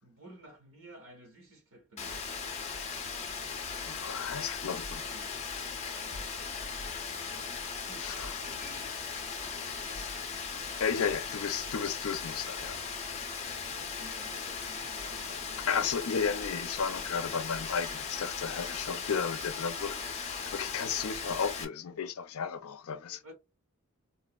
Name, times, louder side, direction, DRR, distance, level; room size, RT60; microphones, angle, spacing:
voice 1, 0.0-2.3 4.6-5.4 5.9-6.3 7.3-9.1 9.5-10.2 13.4-15.7 21.4-21.6 22.9-23.3, right 1 dB, 70° right, 1.4 m, -54 dB
Rain, 2.0-21.6, left 5 dB, 30° left, 0.6 m, -38 dB
voice 2, 3.8-5.0 8.0-8.3 10.8-12.8 15.7-23.2, left 6 dB, 80° left, 0.5 m, -33 dB
3.7 x 2.0 x 2.3 m
head